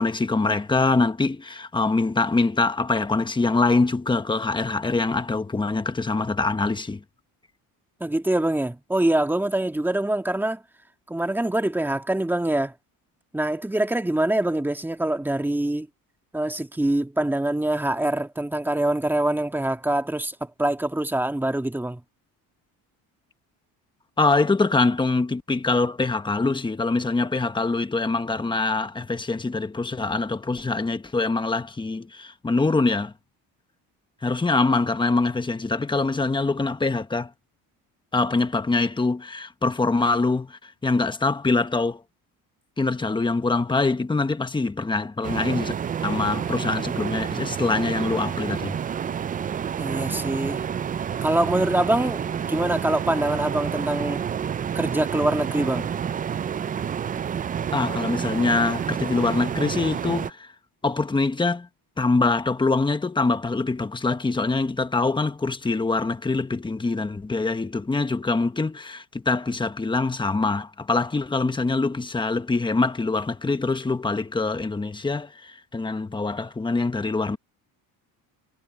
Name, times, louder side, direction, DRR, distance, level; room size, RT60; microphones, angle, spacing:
voice 1, 0.0-7.0 24.2-33.1 34.2-37.3 38.1-42.0 42.8-45.7 46.0-48.8 57.7-60.5 60.8-61.7 62.0-77.4, left 3 dB, 10° left, 1.3 m, -24 dB
voice 2, 8.0-10.6 11.1-12.7 13.3-15.9 16.3-22.0 49.8-50.7 51.2-54.2 54.8-55.9, right 1 dB, 5° right, 1.7 m, -24 dB
sound 1, 45.2-60.3, right 8 dB, 25° right, 0.3 m, -29 dB
cardioid pair, 130°, 38 cm